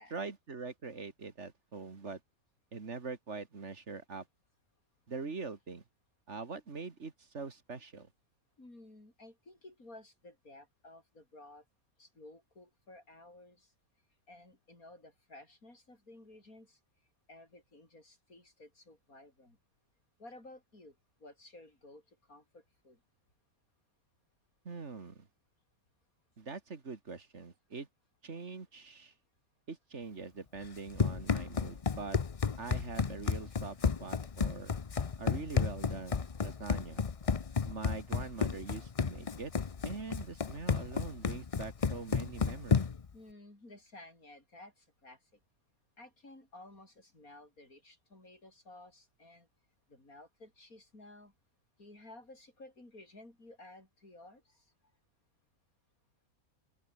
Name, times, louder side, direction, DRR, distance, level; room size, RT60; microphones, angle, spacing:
voice 1, 0.0-2.2 2.7-4.3 5.1-5.8 6.3-8.1 24.6-25.3 26.4-27.9 28.2-29.1 29.7-32.2 32.6-34.7 35.2-37.0 37.7-39.5 39.8-42.9, right 4 dB, 50° right, 2.3 m, -43 dB
voice 2, 8.6-11.6 12.0-13.7 14.3-16.8 17.3-19.6 20.2-23.0 43.1-45.2 46.0-49.5 49.9-51.3 51.8-54.7, left 2 dB, 75° left, 7.7 m, -55 dB
Run, 30.6-43.1, left 5 dB, 35° left, 0.6 m, -32 dB
open air
omnidirectional pair, 1.5 m